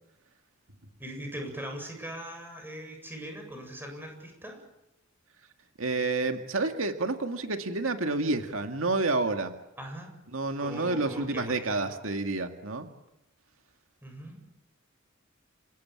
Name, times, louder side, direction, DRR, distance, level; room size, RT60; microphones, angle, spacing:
voice 1, 1.0-4.6 9.8-10.1 10.6-12.0 14.0-14.4, equal, 10° right, 3 dB, 7.7 m, -40 dB
voice 2, 5.8-9.5 10.3-12.9, right 3 dB, 90° right, 6 dB, 2.1 m, -29 dB
29.5 x 17.0 x 8.7 m, 0.90 s
head